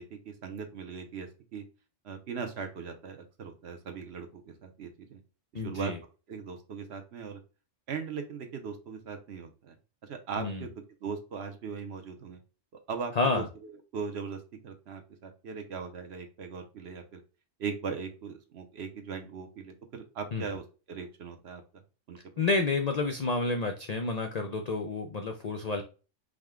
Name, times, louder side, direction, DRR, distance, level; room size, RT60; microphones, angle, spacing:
voice 1, 0.0-1.6 2.0-5.2 5.5-5.9 6.3-7.4 7.9-9.7 10.0-10.7 11.0-12.4 12.9-17.2 17.6-21.6 22.1-22.2, right 5 dB, 60° right, 5 dB, 0.9 m, -39 dB
voice 2, 5.5-6.0 10.4-10.7 13.2-13.5 20.3-20.4 22.4-25.8, left 3 dB, 65° left, 5 dB, 0.4 m, -29 dB
4.9 x 2.2 x 3.6 m, 0.34 s
omnidirectional pair, 1.3 m